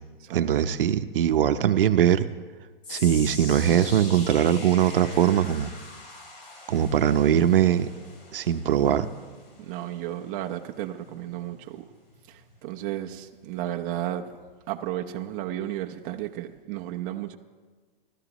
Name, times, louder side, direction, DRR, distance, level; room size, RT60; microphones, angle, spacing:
voice 1, 0.3-2.3 2.9-5.7 6.7-7.9 8.3-9.1, right 10 dB, 65° right, 9 dB, 0.9 m, -21 dB
sound 1, 2.8-15.2 15.5-15.8 16.5-16.6, left 2 dB, 75° left, 3.7 m, -44 dB
voice 2, 9.6-11.8 12.3-14.3 14.7-17.4, right 13 dB, 25° right, 3 dB, 0.7 m, -33 dB
26.5 x 13.0 x 3.1 m, 1.4 s
hypercardioid pair, 150°, 30 cm